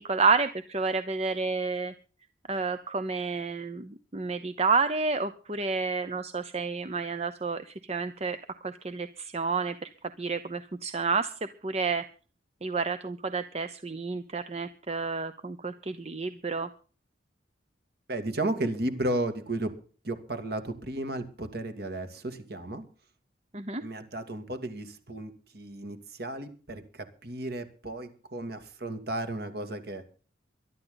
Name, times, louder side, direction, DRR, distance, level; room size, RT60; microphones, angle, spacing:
voice 1, 0.0-1.9 2.5-8.4 8.6-9.9 10.2-11.3 11.6-12.1 12.6-16.7 23.5-23.8, right 4 dB, 35° right, 11 dB, 0.7 m, -30 dB
voice 2, 18.1-19.7 20.0-22.8 23.8-30.0, right 1 dB, 55° right, 9 dB, 2.6 m, -34 dB
22.0 x 12.0 x 4.0 m, 0.39 s
head